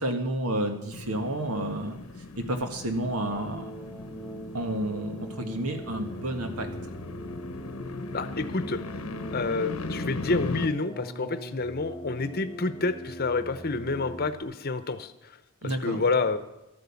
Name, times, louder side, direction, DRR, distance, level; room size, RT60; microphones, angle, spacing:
voice 1, 0.0-2.0 2.4-3.7 4.5-6.7 15.6-16.0, right 1 dB, 90° right, 5 dB, 1.8 m, -30 dB
sound 1, 0.9-10.7, left 3 dB, 75° left, 0.9 m, -38 dB
sound 2, 3.1-14.4, right 1 dB, ahead, 1.1 m, -42 dB
voice 2, 8.1-8.8 9.3-15.4 15.6-16.4, left 3 dB, 45° left, 11 dB, 0.8 m, -29 dB
12.5 x 9.3 x 7.1 m, 0.96 s
head